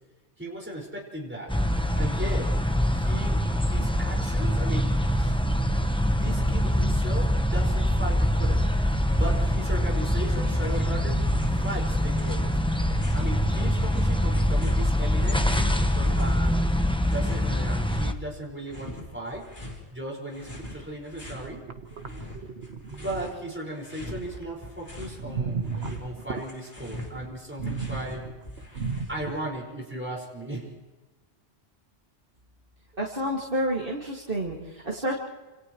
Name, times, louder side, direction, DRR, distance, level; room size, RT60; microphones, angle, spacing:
voice 1, 0.4-1.6 2.0-2.5 2.9-5.4 5.8-8.6 9.2-11.2 11.5-12.6 13.1-16.6 17.1-19.5 19.9-21.6 22.9-25.7 26.0-28.3 29.1-30.7, right 1 dB, 10° right, -2 dB, 5.2 m, -36 dB
sound 1, 1.5-18.1, equal, 5° left, 0.9 m, -24 dB
sound 2, 10.4-11.0 11.2-13.3 13.8-16.5 16.7-18.2 18.6-19.8 20.3-21.5 21.9-23.4 23.7-25.2 25.5-29.4, left 1 dB, 45° left, 4.1 m, -42 dB
sound 3, 21.2-23.5 25.2-26.5 27.6-29.6, right 5 dB, 75° right, 1.4 m, -34 dB
voice 2, 33.0-35.1, right 1 dB, 55° right, -3 dB, 2.5 m, -29 dB
30.0 x 27.5 x 3.1 m, 1.2 s
omnidirectional pair, 1.1 m